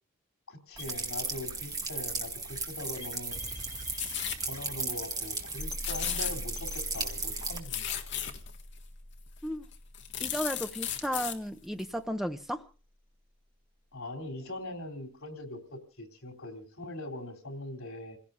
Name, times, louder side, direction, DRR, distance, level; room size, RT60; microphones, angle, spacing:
voice 1, 0.5-3.4 4.4-8.1 13.9-18.2, left 2 dB, 85° left, 3.5 m, -41 dB
sound 1, 0.7-12.8, left 1 dB, 20° left, 2.3 m, -45 dB
sound 2, 0.8-7.6, right 3 dB, 20° right, 2.0 m, -36 dB
sound 3, 3.5-4.4 4.9-5.0 5.2-5.5 5.8-6.8 7.2-8.6 9.3-9.4 9.7-11.4 11.8-11.9, left 11 dB, 55° left, 1.6 m, -36 dB
voice 2, 10.2-12.7, equal, ahead, 0.8 m, -34 dB
28.5 x 16.5 x 2.6 m
head